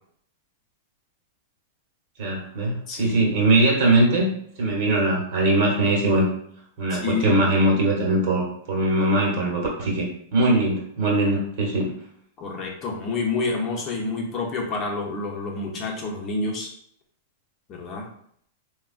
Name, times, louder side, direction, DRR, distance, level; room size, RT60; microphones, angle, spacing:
voice 1, 2.2-4.3 4.6-6.3 6.8-10.1 10.3-11.9, right 2 dB, 60° right, -2 dB, 1.1 m, -21 dB
voice 2, 2.9-3.2 6.9-7.4 12.4-16.7 17.7-18.1, left 3 dB, 35° left, -1 dB, 0.7 m, -28 dB
3.4 x 2.3 x 2.4 m, 0.67 s
hypercardioid pair, 135°, 0 cm